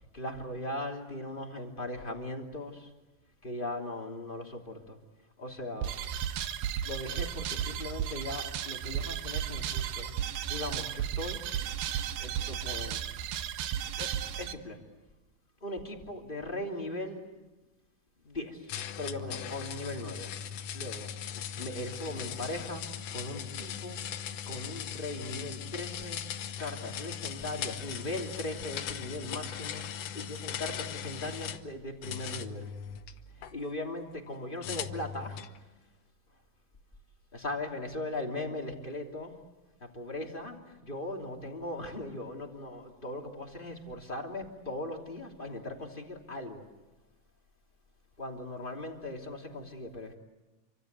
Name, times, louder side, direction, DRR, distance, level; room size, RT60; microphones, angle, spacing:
voice 1, 0.1-2.9 3.4-5.0 5.4-6.0 6.8-10.1 10.5-11.5 12.2-13.0 14.0-14.8 15.6-17.3 18.2-18.7 19.0-20.3 20.6-21.1 21.5-24.0 24.4-26.2 26.6-32.7 33.3-35.5 37.3-39.4 39.8-40.6 40.9-46.7 48.2-50.2, left 1 dB, 15° left, 2 dB, 2.7 m, -39 dB
sound 1, 5.8-14.5, right 9 dB, 85° right, 3.0 m, -34 dB
sound 2, 18.7-31.6 32.0-33.5 34.6-35.6, left 9 dB, 75° left, 1.4 m, -39 dB
28.5 x 25.5 x 8.2 m, 1.1 s
omnidirectional pair, 4.3 m